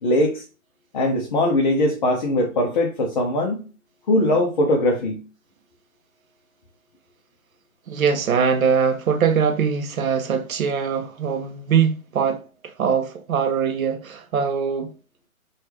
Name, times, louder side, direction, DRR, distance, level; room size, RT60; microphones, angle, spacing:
voice 1, 0.0-0.4 0.9-3.6 4.1-5.2, left 1 dB, 35° left, 0.5 m, -21 dB
voice 2, 7.9-14.9, right 6 dB, 70° right, 0.6 m, -22 dB
3.2 x 2.3 x 2.9 m
hypercardioid pair, 145°, 43 cm